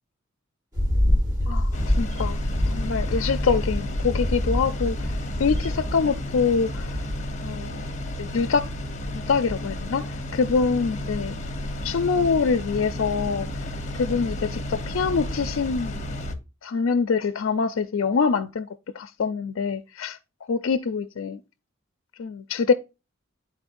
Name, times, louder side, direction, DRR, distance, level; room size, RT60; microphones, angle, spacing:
sound 1, 0.7-7.2, left 1 dB, 15° right, 1.4 m, -26 dB
sound 2, 1.7-16.3, left 1 dB, 35° left, 0.9 m, -32 dB
voice 1, 2.0-2.4 2.7-4.9 5.4-6.8 7.4-7.8 8.2-8.7 9.1-10.0 10.3-11.3 11.8-13.5 14.0-16.0 16.6-18.7 19.0-20.2 20.5-21.4 22.2-22.7, left 5 dB, 75° left, 0.4 m, -24 dB
11.5 x 4.2 x 2.5 m
head